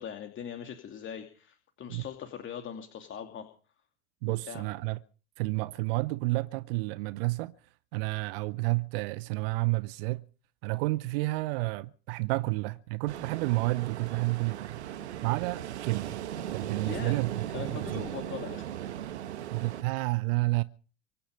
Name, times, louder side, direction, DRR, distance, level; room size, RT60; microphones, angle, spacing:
voice 1, 0.0-3.5 4.3-4.6 16.8-17.2 17.5-18.7, left 8 dB, 35° left, 2.5 m, -41 dB
voice 2, 4.2-5.0 5.4-7.5 7.9-10.2 10.6-14.8 15.2-16.2 16.5-17.4 17.7-18.0 19.5-20.6, right 22 dB, 55° right, 0.8 m, -30 dB
Ocean, 13.1-19.8, right 11 dB, 75° right, 1.5 m, -38 dB
24.5 x 10.0 x 5.2 m
figure-of-eight pair, 75°, 34 cm